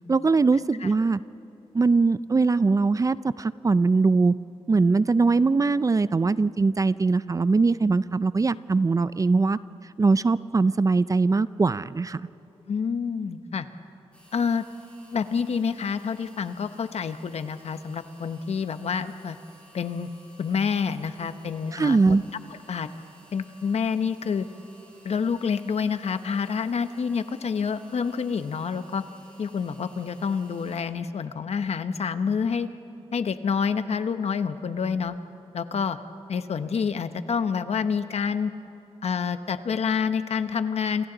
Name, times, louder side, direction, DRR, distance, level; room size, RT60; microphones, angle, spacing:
voice 1, 0.1-1.2 1.7-4.3 4.7-9.6 10.0-12.2 21.7-22.2, right 4 dB, 30° right, 16 dB, 0.4 m, -21 dB
voice 2, 12.7-13.7 14.3-14.6 15.1-19.4 19.7-20.1 20.4-22.2 22.7-22.9 23.3-24.4 25.0-29.0 29.4-32.7 33.1-35.1 35.5-36.0 36.3-38.5 39.0-41.1, left 6 dB, 70° left, 10 dB, 0.9 m, -28 dB
sound 1, 14.1-30.8, right 1 dB, 10° left, 7.1 m, -55 dB
28.0 x 28.0 x 4.0 m, 2.8 s
wide cardioid pair, 90°, 11 cm